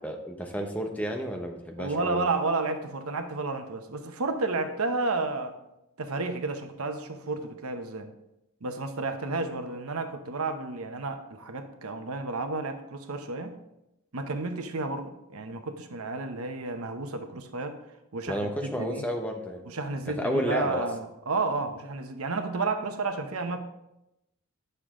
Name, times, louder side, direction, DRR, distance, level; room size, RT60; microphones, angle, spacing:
voice 1, 0.0-2.3 18.3-19.6 20.1-20.9, equal, 5° left, 3 dB, 0.9 m, -31 dB
voice 2, 1.8-5.6 6.0-8.1 8.6-13.6 14.1-17.8 18.1-19.0 19.7-23.6, right 3 dB, 90° right, 7 dB, 0.9 m, -31 dB
9.8 x 6.7 x 3.7 m, 0.88 s
head